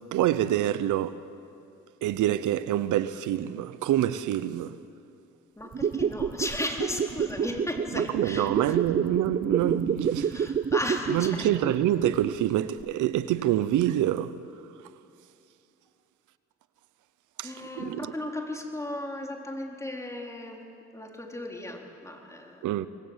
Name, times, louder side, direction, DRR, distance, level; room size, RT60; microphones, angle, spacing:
voice 1, 0.1-1.2 2.0-4.8 7.9-10.5 11.1-14.4 17.4-18.0 22.6-22.9, right 12 dB, 85° right, 0.9 m, -26 dB
voice 2, 5.6-8.8 10.2-11.5 17.4-20.6 20.9-22.7, left 1 dB, 10° left, 4.0 m, -35 dB
sound 1, 5.6-12.5 12.8-12.9, right 7 dB, 30° right, 0.5 m, -29 dB
26.0 x 20.5 x 8.2 m
cardioid pair, 90°, 30 cm